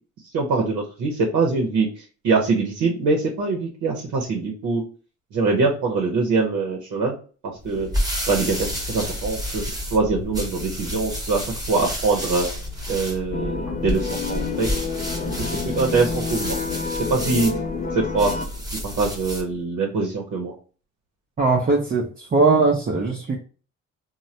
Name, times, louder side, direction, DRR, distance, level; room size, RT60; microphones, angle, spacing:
voice 1, 0.3-1.9 2.2-4.8 5.3-7.1 7.4-7.9 8.3-12.5 12.9-14.7 15.4-16.6 16.9-17.5 17.9-18.4 18.8-20.5, right 3 dB, 75° right, 0 dB, 0.8 m, -23 dB
sound 1, 7.6-19.5, equal, 10° right, 0.9 m, -30 dB
sound 2, 13.3-18.5, left 4 dB, 30° left, 0.4 m, -29 dB
voice 2, 21.4-23.4, right 3 dB, 30° right, 0 dB, 0.5 m, -20 dB
3.2 x 2.1 x 2.6 m, 0.38 s
cardioid pair, 90°, 30 cm